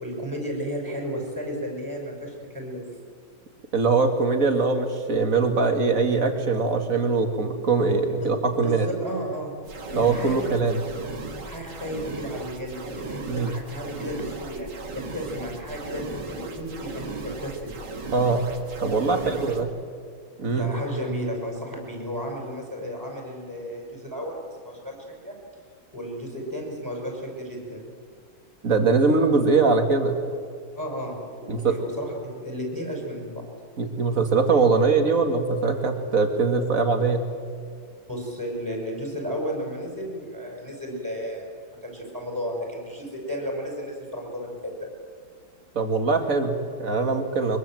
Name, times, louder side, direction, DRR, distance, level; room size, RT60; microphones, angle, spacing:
voice 1, 0.0-2.8 8.2-8.3 8.6-9.5 9.9-10.4 11.4-14.7 14.9-17.8 19.1-19.3 20.4-25.4 25.9-27.9 30.8-33.5 38.1-41.5 41.8-44.9, equal, 10° right, 0 dB, 5.9 m, -33 dB
voice 2, 3.7-8.9 9.9-10.8 13.3-13.5 18.1-18.5 18.8-19.7 20.4-20.7 28.6-30.2 31.5-31.8 33.8-37.2 45.8-47.6, right 4 dB, 45° right, 5 dB, 2.3 m, -22 dB
sound 1, 9.6-19.6, right 3 dB, 60° right, 2.6 m, -37 dB
23.5 x 22.5 x 7.7 m, 2.1 s
omnidirectional pair, 2.1 m